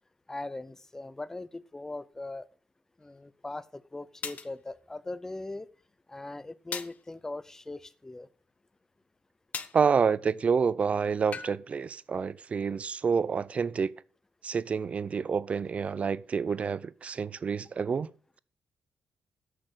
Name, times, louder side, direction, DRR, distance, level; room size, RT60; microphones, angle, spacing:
voice 1, 0.3-2.5 3.0-5.7 6.1-8.3, left 2 dB, 15° left, 0.5 m, -40 dB
sound 1, 3.1-3.2 4.2-4.5 6.7-7.0 9.5-9.8 11.3-11.6, left 6 dB, 45° left, 0.8 m, -37 dB
voice 2, 9.7-13.9 14.4-18.1, right 6 dB, 40° right, 0.5 m, -28 dB
8.9 x 6.4 x 6.5 m
cardioid pair, 130°, 4 cm